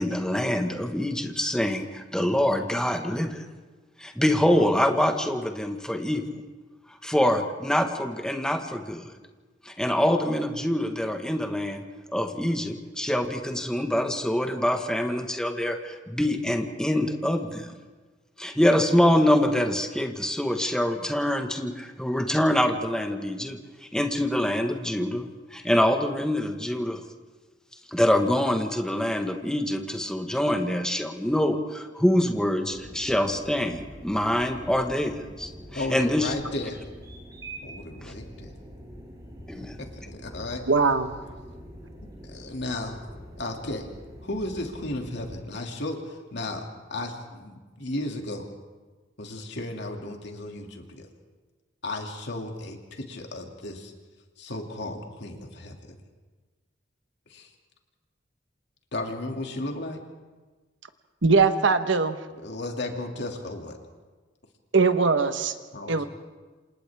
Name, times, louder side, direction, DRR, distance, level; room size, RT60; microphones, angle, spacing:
voice 1, 0.0-3.4 4.0-6.2 7.0-9.1 9.6-11.8 12.1-17.7 18.4-23.6 23.9-27.0 27.9-36.3 38.0-38.1 39.5-39.8, left 1 dB, 5° left, 4 dB, 1.4 m, -25 dB
sound 1, 32.7-45.4, equal, 20° right, 5.6 m, -44 dB
voice 2, 35.7-36.8 37.6-38.5 39.8-40.6 42.3-43.0 43.4-43.9 44.2-46.6 46.9-48.5 49.2-51.1 51.8-53.9 54.4-55.7 57.3-57.5 58.9-60.0 62.3-63.8 65.7-66.1, left 2 dB, 65° left, 2 dB, 2.5 m, -34 dB
voice 3, 40.7-41.1 61.2-62.2 64.7-65.5 65.9-66.0, right 4 dB, 80° right, 9 dB, 1.2 m, -21 dB
27.5 x 27.0 x 3.6 m, 1.3 s
head